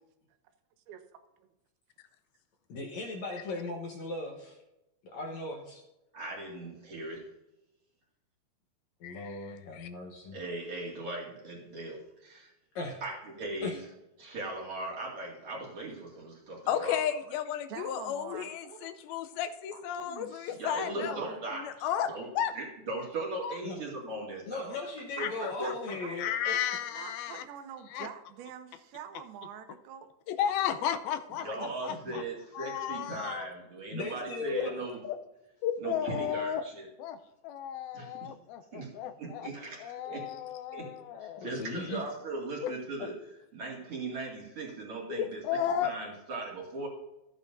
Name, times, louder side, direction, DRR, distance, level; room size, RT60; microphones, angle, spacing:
voice 1, 2.7-4.6 5.1-5.8 9.0-10.4 12.8-13.0 13.6-13.8 23.6-23.8 24.5-26.6 31.9-32.0 33.9-34.7 41.4-42.0, left 3 dB, 65° left, 0 dB, 1.9 m, -38 dB
voice 2, 6.1-7.3 10.3-12.5 13.0-13.8 14.2-17.2 20.6-22.3 22.5-24.7 25.2-25.3 25.6-25.7 31.4-35.0 35.8-36.9 37.9-38.3 38.7-38.9 39.2-40.3 40.7-40.9 41.2-45.4 45.8-46.9, right 2 dB, 40° right, -3 dB, 2.7 m, -38 dB
voice 3, 9.0-9.9 16.7-21.2 21.6-22.5 23.4-23.6 25.2-25.5 26.2-27.4 27.9-28.1 30.3-32.2 32.6-33.5 34.5-34.6 35.0-35.2 35.6-36.6 37.0-37.2 37.4-39.5 39.8-41.5 42.6-42.7 45.1-45.9, left 9 dB, 85° left, 9 dB, 2.5 m, -33 dB
voice 4, 17.7-18.9 19.7-21.4 25.2-26.3 26.9-30.1 30.6-30.7 31.4-31.7, right 9 dB, 85° right, 8 dB, 2.7 m, -45 dB
14.0 x 8.8 x 2.6 m, 0.95 s
omnidirectional pair, 4.3 m